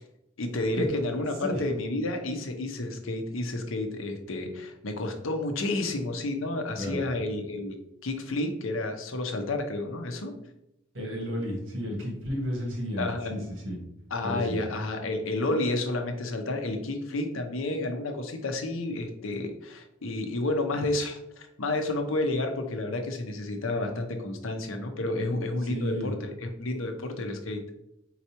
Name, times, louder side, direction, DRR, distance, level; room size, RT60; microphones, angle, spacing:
voice 1, 0.4-7.7 8.0-10.3 13.0-13.5 14.1-27.6, left 2 dB, 85° left, 5 dB, 0.8 m, -30 dB
voice 2, 10.9-13.8 14.2-14.6 25.6-26.1, equal, 75° right, 0 dB, 1.6 m, -32 dB
4.6 x 4.0 x 2.9 m, 0.83 s
head